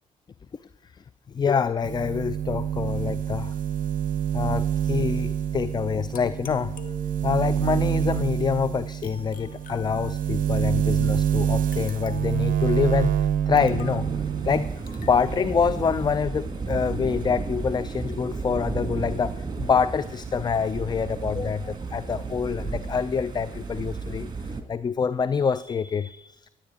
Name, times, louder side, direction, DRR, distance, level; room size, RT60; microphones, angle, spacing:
voice 1, 1.3-3.5 4.3-6.8 7.2-14.1 14.5-14.7 15.0-26.5, left 6 dB, 25° left, 16 dB, 0.4 m, -26 dB
sound 1, 1.8-14.8 15.1-16.1, right 9 dB, 50° right, 0.6 m, -27 dB
sound 2, 6.1-7.5 9.0-10.4 11.7-12.5 13.6-14.1 14.9-15.2, left 6 dB, 50° left, 1.2 m, -47 dB
sound 3, 13.6-24.6, right 4 dB, 25° right, 1.9 m, -33 dB
24.5 x 8.6 x 3.8 m, 0.78 s
hypercardioid pair, 50°, 18 cm